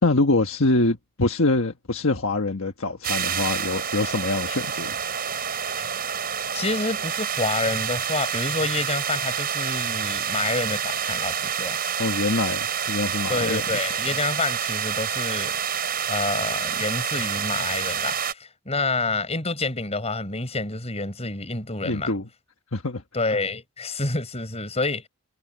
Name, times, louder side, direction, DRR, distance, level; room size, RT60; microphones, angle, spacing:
voice 1, 0.0-5.0 12.0-13.6 21.8-22.3 22.7-23.0, left 2 dB, 65° left, 1.4 m, -24 dB
sound 1, 3.0-18.3, right 8 dB, 45° right, 5.9 m, -28 dB
voice 2, 6.5-11.8 13.3-15.6 16.1-22.1 23.1-25.1, left 3 dB, 30° left, 6.4 m, -28 dB
head